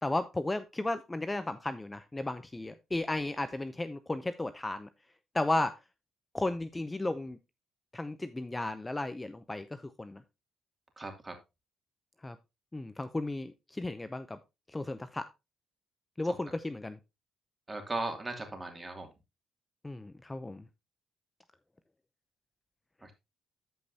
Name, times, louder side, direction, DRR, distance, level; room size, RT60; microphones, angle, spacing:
voice 1, 0.0-4.9 5.3-5.7 6.3-7.4 7.9-10.2 12.2-12.4 12.7-14.4 14.7-15.2 16.2-17.0 19.8-20.7, left 2 dB, 15° left, 11 dB, 0.6 m, -34 dB
voice 2, 11.0-11.3 17.7-19.1 23.0-23.1, right 2 dB, 20° right, 4 dB, 2.6 m, -37 dB
13.5 x 5.3 x 2.8 m, 0.24 s
cardioid pair, 90°, 0 cm